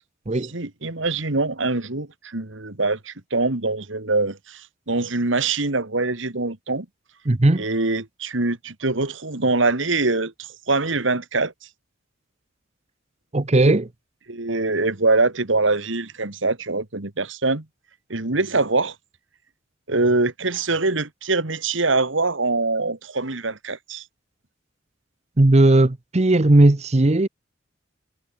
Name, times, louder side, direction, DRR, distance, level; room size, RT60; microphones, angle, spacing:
voice 1, 0.5-4.6 4.9-6.9 7.6-11.5 14.3-17.6 18.1-18.9 19.9-24.0, right 3 dB, 70° right, 2.1 m, -23 dB
voice 2, 7.3-7.6 13.3-13.9 25.4-27.3, right 2 dB, 35° right, 0.8 m, -16 dB
head